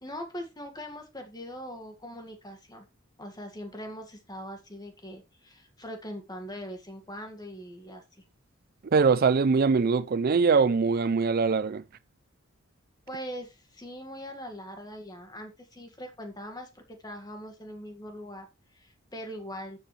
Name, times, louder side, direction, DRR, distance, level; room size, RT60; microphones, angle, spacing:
voice 1, 0.0-2.9 3.2-8.2 13.1-19.8, equal, 20° left, 1.9 m, -41 dB
voice 2, 8.8-11.8, right 5 dB, 45° right, 0.4 m, -22 dB
13.0 x 7.8 x 3.2 m
head